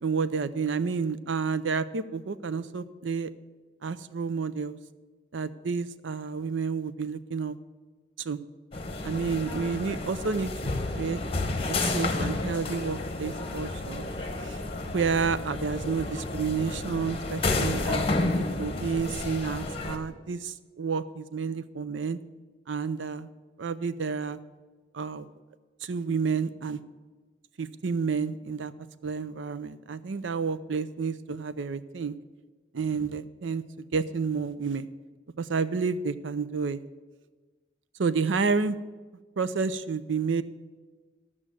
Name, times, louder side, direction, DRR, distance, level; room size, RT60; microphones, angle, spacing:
voice 1, 0.0-3.3 3.8-4.8 5.3-7.6 8.2-8.4 9.0-10.5 10.9-11.2 11.7-14.1 14.4-14.6 14.9-22.2 22.7-23.3 23.6-24.4 24.9-25.3 25.8-26.8 27.6-28.7 29.0-32.2 32.7-33.6 33.9-34.9 35.4-36.8 38.0-38.8 39.4-40.4, right 5 dB, 85° right, 14 dB, 0.5 m, -30 dB
sound 1, 8.7-20.0, left 2 dB, 30° left, 1.1 m, -31 dB
13.0 x 6.1 x 7.6 m, 1.3 s
head